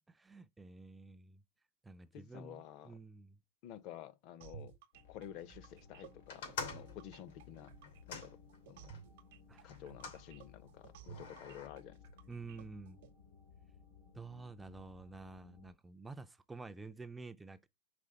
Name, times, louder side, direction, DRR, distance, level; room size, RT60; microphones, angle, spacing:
voice 1, 0.1-1.4 1.8-3.4 9.5-9.8 12.3-13.0 14.1-17.7, right 3 dB, 10° right, 0.3 m, -50 dB
voice 2, 2.1-3.0 3.6-4.8 5.1-7.8 8.1-8.4 8.7-9.0 9.6-12.0, left 10 dB, 45° left, 0.6 m, -51 dB
sound 1, 4.4-13.1, right 9 dB, 70° right, 0.8 m, -55 dB
sound 2, 4.9-15.7, left 6 dB, 70° left, 3.4 m, -60 dB
sound 3, 6.3-9.0 9.7-10.2 11.0-11.7, left 5 dB, 90° left, 2.8 m, -46 dB
5.1 x 3.4 x 5.6 m
supercardioid pair, 160°, 0 cm